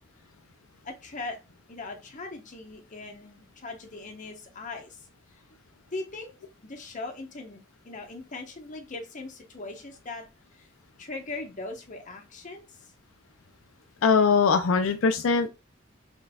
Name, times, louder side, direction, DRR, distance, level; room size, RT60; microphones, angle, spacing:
voice 1, 0.8-1.4 1.7-5.1 5.9-6.3 6.6-10.2 10.5-10.7 11.0-12.8, left 3 dB, 40° left, 1.0 m, -39 dB
voice 2, 14.0-15.5, left 5 dB, 85° left, 0.5 m, -21 dB
3.9 x 3.8 x 2.3 m
head